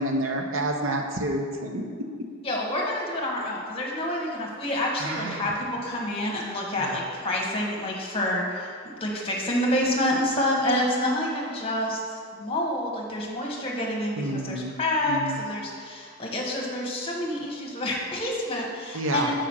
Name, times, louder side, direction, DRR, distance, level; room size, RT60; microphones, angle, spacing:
voice 1, 0.0-2.3 5.0-5.5 6.8-7.0 14.2-14.7 15.1-15.4 18.9-19.3, right 1 dB, 70° right, 3 dB, 0.8 m, -29 dB
voice 2, 2.4-12.0 12.3-19.3, left 1 dB, 25° left, -2 dB, 1.1 m, -28 dB
5.0 x 5.0 x 6.1 m, 2.1 s
head